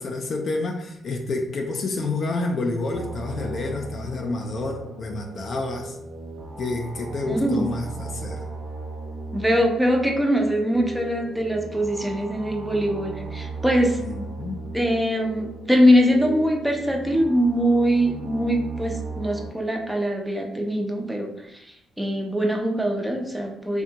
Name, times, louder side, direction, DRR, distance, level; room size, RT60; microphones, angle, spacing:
voice 1, 0.0-6.0 6.6-8.4 14.0-14.6, left 2 dB, 55° left, 2 dB, 0.3 m, -29 dB
sound 1, 2.9-19.5, right 3 dB, 75° right, 0.6 m, -37 dB
voice 2, 7.3-7.7 9.3-14.0 14.7-21.3 22.0-23.8, equal, 5° right, 1 dB, 0.4 m, -22 dB
2.6 x 2.2 x 2.8 m, 0.83 s
cardioid pair, 90°, 0 cm